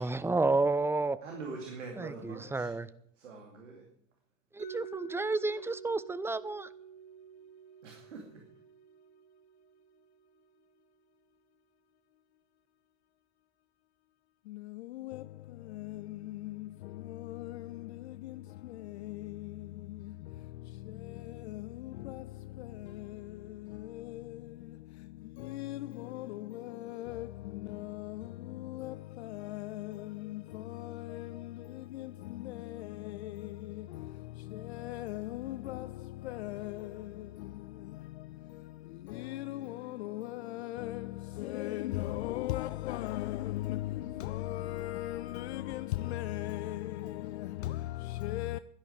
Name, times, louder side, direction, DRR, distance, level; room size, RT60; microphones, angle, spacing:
voice 1, 0.0-1.2 2.0-2.9 4.5-6.7, right 3 dB, 5° right, 0.6 m, -31 dB
voice 2, 1.2-2.7 3.2-3.9 7.8-8.4, right 4 dB, 75° right, 2.6 m, -44 dB
Mallet percussion, 4.6-10.4, right 8 dB, 55° right, 6.0 m, -49 dB
voice 3, 14.5-48.6, left 16 dB, 60° left, 0.5 m, -39 dB
16.0 x 12.0 x 4.8 m
figure-of-eight pair, 70°, 37 cm